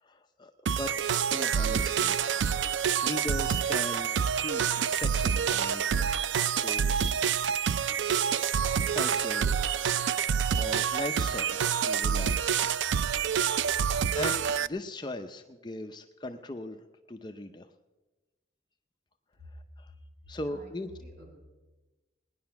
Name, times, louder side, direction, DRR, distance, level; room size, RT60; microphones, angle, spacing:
voice 1, 0.0-2.2 2.6-7.6 8.7-9.6 10.5-12.7 13.7-13.8 14.2-17.7 19.5-19.9 20.3-20.9, left 2 dB, 25° left, 6 dB, 0.6 m, -39 dB
sound 1, 0.7-14.7, right 7 dB, 80° right, 0.4 m, -27 dB
voice 2, 12.8-14.3 19.4-19.5 20.2-21.4, equal, 50° right, -1 dB, 5.5 m, -49 dB
18.5 x 10.5 x 5.8 m, 1.1 s
head